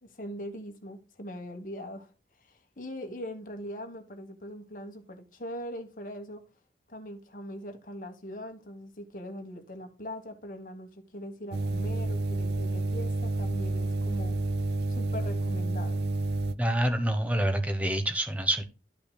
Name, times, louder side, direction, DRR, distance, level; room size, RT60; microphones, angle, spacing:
voice 1, 0.0-2.1 2.4-6.4 6.9-14.4 14.9-16.1, equal, 50° left, 1.4 m, -41 dB
sound 1, 11.5-16.5, right 2 dB, 70° right, 0.6 m, -29 dB
voice 2, 16.6-18.6, right 1 dB, 10° right, 1.0 m, -27 dB
12.0 x 5.8 x 2.3 m
head